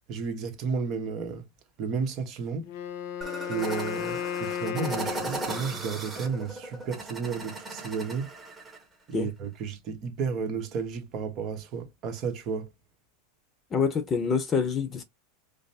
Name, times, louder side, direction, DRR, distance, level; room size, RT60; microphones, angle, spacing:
voice 1, 0.1-1.5 1.8-2.7 3.5-8.3 9.1-12.7, right 5 dB, 40° right, 1.2 m, -32 dB
Wind instrument woodwind instrument, 2.6-5.9, left 9 dB, 55° left, 0.6 m, -34 dB
sound 1, 3.2-8.8, right 2 dB, 10° right, 1.3 m, -37 dB
voice 2, 13.7-15.0, left 5 dB, 25° left, 0.8 m, -26 dB
4.9 x 2.1 x 2.7 m
supercardioid pair, 135°, 0 cm